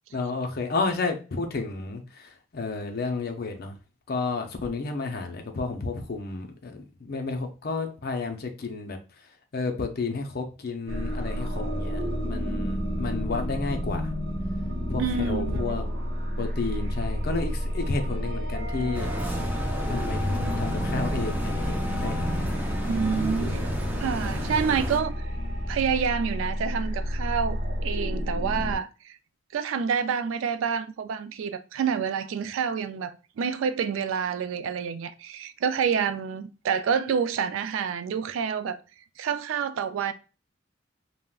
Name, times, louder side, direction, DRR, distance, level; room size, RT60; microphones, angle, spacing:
voice 1, 0.1-3.8 4.1-14.1 14.9-15.9 16.4-19.1 19.9-22.3, left 3 dB, 50° left, 0.5 m, -31 dB
sound 1, 10.9-28.8, equal, 55° right, 0.7 m, -30 dB
voice 2, 15.0-15.8 22.9-23.7 24.0-25.2 25.7-29.2 29.5-38.8 39.2-40.1, right 6 dB, 85° right, 0.3 m, -28 dB
sound 2, 18.1-23.2, left 5 dB, 30° right, 0.9 m, -41 dB
sound 3, 18.9-25.0, equal, 10° right, 0.4 m, -32 dB
3.5 x 2.1 x 2.3 m
head